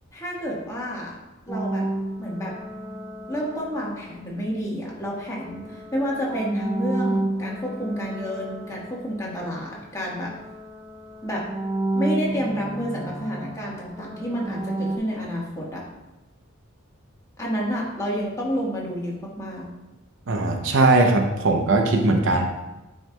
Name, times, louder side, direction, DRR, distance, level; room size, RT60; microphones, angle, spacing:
voice 1, 0.1-1.1 1.5-1.9 2.2-2.5 3.3-10.3 11.2-11.4 11.9-15.8 17.4-19.7, equal, 15° left, -5 dB, 1.4 m, -29 dB
sound 1, 1.5-4.4 5.1-9.9 10.1-15.0, right 2 dB, 5° right, 0.7 m, -31 dB
voice 2, 20.3-22.5, right 2 dB, 65° right, 3 dB, 0.7 m, -19 dB
9.0 x 4.6 x 2.3 m, 1.1 s
head